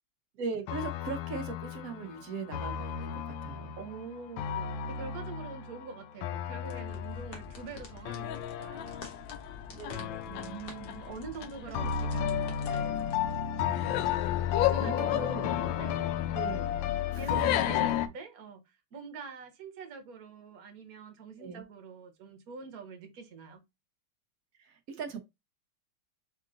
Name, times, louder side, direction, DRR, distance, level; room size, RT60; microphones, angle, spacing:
voice 1, 0.3-3.7 9.7-10.6 11.8-11.9 14.8-15.5 16.3-16.8 17.1-17.5 21.4-21.6 24.6-25.2, right 4 dB, 80° right, 0.7 m, -39 dB
sound 1, 0.7-18.1, left 9 dB, 75° left, 1.2 m, -32 dB
voice 2, 3.8-9.1 10.3-13.0 14.6-16.2 17.2-23.6, right 4 dB, 50° right, 1.2 m, -45 dB
sound 2, 6.7-13.4, left 4 dB, 50° left, 1.3 m, -47 dB
3.7 x 3.6 x 3.7 m
omnidirectional pair, 2.4 m